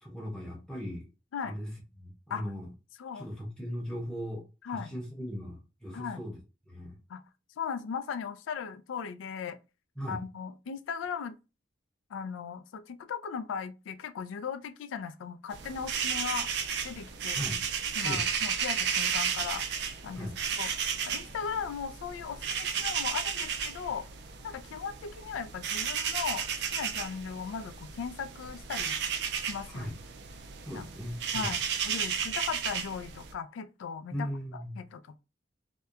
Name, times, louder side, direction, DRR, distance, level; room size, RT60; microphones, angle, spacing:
voice 1, 0.0-1.0 1.4-2.7 3.1-6.4 6.7-7.0 10.0-10.2 17.3-17.6 18.0-18.2 20.1-20.3 29.7-29.9 30.6-31.5 34.1-34.8, equal, 5° left, 0.6 m, -38 dB
voice 2, 7.6-9.6 10.1-11.4 12.1-16.5 16.8-17.4 18.0-19.7 20.0-20.3 20.6-24.1 24.4-29.0 29.4-29.9 30.7-30.9 31.3-34.1 34.5-35.2, left 6 dB, 85° left, 0.3 m, -37 dB
sound 1, 15.5-33.3, right 7 dB, 60° right, 0.3 m, -33 dB
2.7 x 2.1 x 2.3 m
head